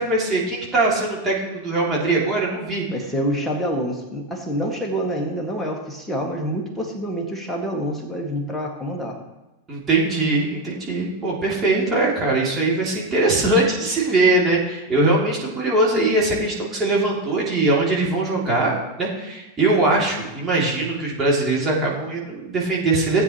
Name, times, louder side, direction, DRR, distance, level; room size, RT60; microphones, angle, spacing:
voice 1, 0.0-2.8 9.7-23.2, right 2 dB, 15° right, -5 dB, 2.9 m, -21 dB
voice 2, 2.9-9.2, equal, 5° left, -1 dB, 1.9 m, -27 dB
17.0 x 8.8 x 3.0 m, 1.0 s
figure-of-eight pair, 90°, 0 cm